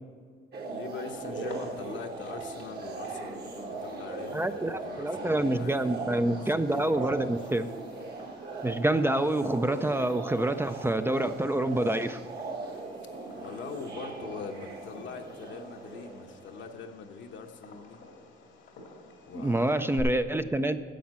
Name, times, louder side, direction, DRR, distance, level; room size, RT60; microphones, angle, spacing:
sound 1, 0.5-16.7, right 3 dB, 55° right, 1.5 m, -39 dB
voice 1, 0.7-7.3 13.3-18.0 19.3-19.7, left 5 dB, 70° left, 5 dB, 1.1 m, -42 dB
Fireworks, 1.0-20.0, left 4 dB, 85° left, 2.1 m, -52 dB
voice 2, 4.3-7.7 8.6-12.2 19.3-20.8, right 1 dB, 10° right, 9 dB, 0.4 m, -27 dB
10.0 x 7.2 x 7.5 m, 2.1 s
cardioid pair, 90°, 20 cm